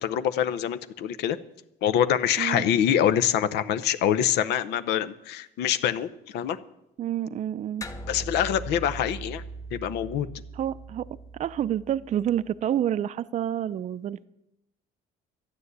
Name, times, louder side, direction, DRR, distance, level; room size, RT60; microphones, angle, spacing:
voice 1, 0.0-1.4 1.8-6.6 8.1-9.4 9.7-10.3, left 10 dB, 80° left, 12 dB, 0.7 m, -25 dB
voice 2, 7.0-7.9 10.5-11.1 11.3-14.3, right 10 dB, 45° right, 14 dB, 0.5 m, -28 dB
sound 1, 7.8-12.5, right 2 dB, 20° left, 1.4 m, -40 dB
12.0 x 9.6 x 8.1 m, 0.85 s
cardioid pair, 110°, 17 cm